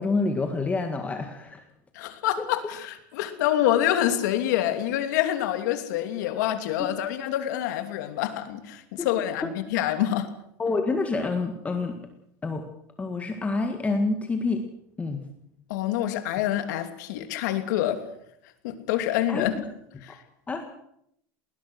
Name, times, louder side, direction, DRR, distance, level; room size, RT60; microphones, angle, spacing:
voice 1, 0.0-1.6 2.4-2.5 6.8-6.9 9.0-9.1 10.6-12.0 12.4-12.6 13.0-14.6 15.0-15.2 19.3-19.7 20.5-20.6, left 3 dB, 15° left, 5 dB, 1.8 m, -27 dB
voice 2, 1.9-10.3 15.7-18.0 18.6-19.5 20.0-20.2, left 12 dB, 85° left, 7 dB, 3.0 m, -26 dB
20.5 x 19.5 x 6.5 m, 0.73 s
supercardioid pair, 150°, 9 cm